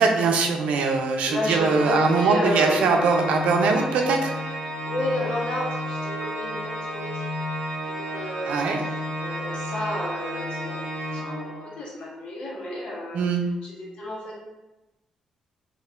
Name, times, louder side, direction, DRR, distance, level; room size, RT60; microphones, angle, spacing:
voice 1, 0.0-4.5 8.5-8.8 13.1-13.4, right 4 dB, 85° right, 3 dB, 0.6 m, -22 dB
voice 2, 1.2-3.2 4.8-7.3 7.9-10.8 11.1-13.2 13.6-14.4, left 1 dB, 55° left, -5 dB, 1.5 m, -32 dB
Organ, 1.3-11.9, equal, 30° left, 1.5 m, -32 dB
5.5 x 3.0 x 2.4 m, 1.0 s
cardioid pair, 165°, 2 cm